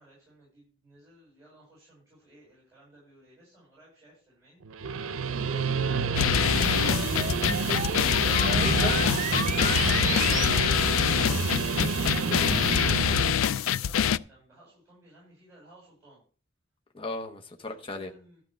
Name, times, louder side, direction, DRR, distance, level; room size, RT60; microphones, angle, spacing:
voice 1, 0.0-7.7 13.3-16.2 17.6-18.4, right 1 dB, 15° right, 7.0 m, -58 dB
Guitar, 4.6-13.4, right 5 dB, 85° right, 0.6 m, -29 dB
sound 1, 5.4-10.5, right 5 dB, 40° right, 0.8 m, -35 dB
sound 2, 6.2-14.2, left 9 dB, 85° left, 0.4 m, -25 dB
voice 2, 8.3-8.9 12.1-12.6 16.9-18.1, left 3 dB, 25° left, 0.9 m, -36 dB
12.5 x 4.5 x 7.9 m
head